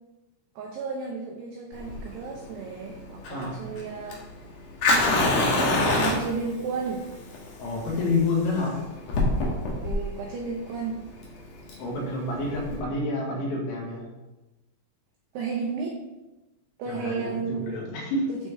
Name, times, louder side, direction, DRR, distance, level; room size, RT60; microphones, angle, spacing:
voice 1, 0.6-4.2 4.8-7.1 9.8-11.0 15.3-16.0 16.8-17.8 18.3-18.4, right 5 dB, 90° right, 1 dB, 2.3 m, -33 dB
Fire, 1.7-12.8, left 2 dB, 85° left, 1.8 m, -27 dB
voice 2, 3.3-3.6 7.6-8.8 11.8-14.0 16.9-18.2, left 2 dB, 70° left, -3 dB, 3.9 m, -28 dB
11.5 x 4.6 x 3.3 m, 1.1 s
omnidirectional pair, 5.9 m